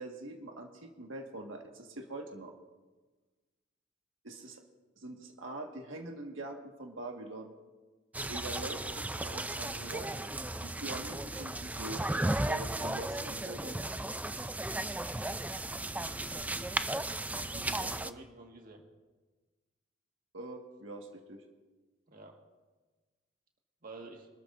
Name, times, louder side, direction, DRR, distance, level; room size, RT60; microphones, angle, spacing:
voice 1, 0.0-2.5 4.2-4.6 5.0-7.5 8.3-10.1 10.6-12.0 12.4-13.9 20.3-21.4, right 2 dB, 80° right, 2 dB, 1.6 m, -43 dB
sound 1, 8.1-18.1, right 2 dB, 10° right, 0.4 m, -35 dB
voice 2, 17.5-18.8 22.1-22.4 23.8-24.3, right 2 dB, 50° right, 1 dB, 1.7 m, -49 dB
25.5 x 13.0 x 2.6 m, 1.3 s
head